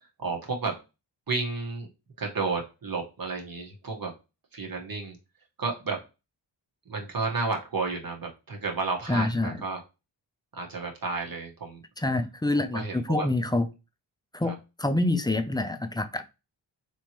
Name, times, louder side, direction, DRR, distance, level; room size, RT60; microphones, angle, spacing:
voice 1, 0.2-0.8 1.3-1.9 2.2-4.1 4.5-5.2 5.6-6.0 6.8-9.8 10.5-11.8 12.7-13.3 14.4-14.5, right 4 dB, 50° right, 2 dB, 1.4 m, -32 dB
voice 2, 9.1-9.6 12.0-13.7 14.3-16.2, left 2 dB, 10° left, 10 dB, 0.5 m, -27 dB
3.5 x 3.1 x 2.9 m, 0.27 s
cardioid pair, 60°, 45 cm